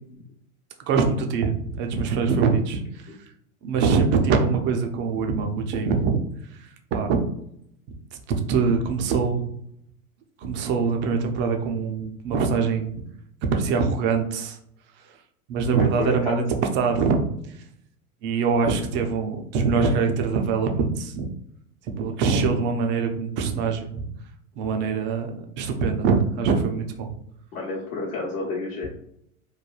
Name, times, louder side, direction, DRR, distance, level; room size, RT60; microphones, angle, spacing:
voice 1, 0.9-3.2 3.6-6.2 6.6-7.2 8.1-9.4 10.4-12.9 13.5-14.6 15.0-15.1 15.5-16.5 16.7-17.3 18.2-21.3 22.0-24.1 24.6-27.1, right 5 dB, 30° right, 4 dB, 0.4 m, -23 dB
voice 2, 15.8-16.4 27.5-28.9, left 2 dB, 70° left, -5 dB, 0.9 m, -30 dB
3.1 x 2.2 x 2.3 m, 0.71 s
hypercardioid pair, 95°, 43 cm